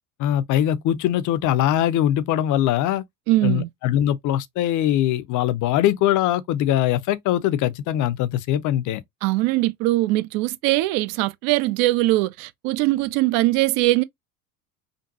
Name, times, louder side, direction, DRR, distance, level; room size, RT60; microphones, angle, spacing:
voice 1, 0.2-3.0 3.4-9.0, left 12 dB, 40° left, 0.7 m, -22 dB
voice 2, 3.3-3.7 9.2-14.0, right 18 dB, 50° right, 0.6 m, -21 dB
5.2 x 2.5 x 2.6 m
hypercardioid pair, 70°, 45 cm